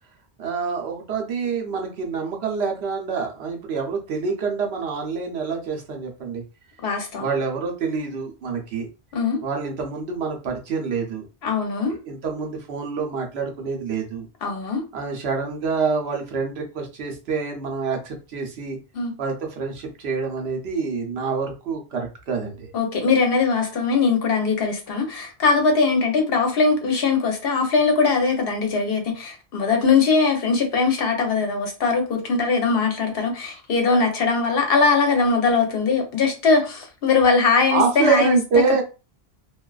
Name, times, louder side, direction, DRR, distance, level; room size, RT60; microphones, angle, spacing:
voice 1, 0.4-6.4 7.2-8.9 9.4-11.3 12.0-14.3 14.9-18.8 19.2-22.7 37.7-38.8, right 5 dB, 85° right, 1.0 m, -26 dB
voice 2, 6.8-7.3 9.1-9.4 11.4-11.9 14.4-14.8 18.9-19.1 22.7-38.4, left 4 dB, 70° left, 0.9 m, -21 dB
2.5 x 2.3 x 2.3 m
omnidirectional pair, 1.0 m